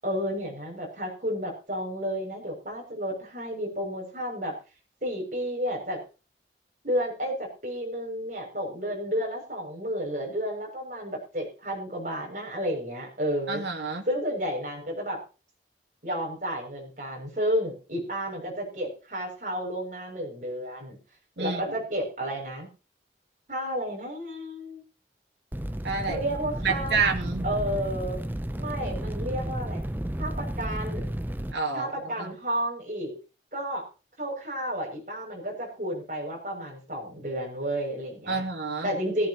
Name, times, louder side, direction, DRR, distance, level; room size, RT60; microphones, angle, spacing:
voice 1, 0.0-4.6 5.0-6.0 6.8-13.6 14.1-15.2 16.0-21.0 21.4-22.7 23.5-24.8 26.0-27.0 27.4-28.2 28.6-29.8 30.2-31.1 31.7-33.1 33.5-33.8 34.2-38.4 38.8-39.3, equal, 45° right, 0 dB, 6.7 m, -31 dB
voice 2, 13.5-14.0 21.4-21.6 25.8-26.2 26.6-27.5 31.5-32.3 38.3-38.9, right 4 dB, 85° right, 2 dB, 2.6 m, -29 dB
sound 1, 25.5-31.5, right 1 dB, 10° right, 0.6 m, -32 dB
17.0 x 16.0 x 3.0 m, 0.34 s
head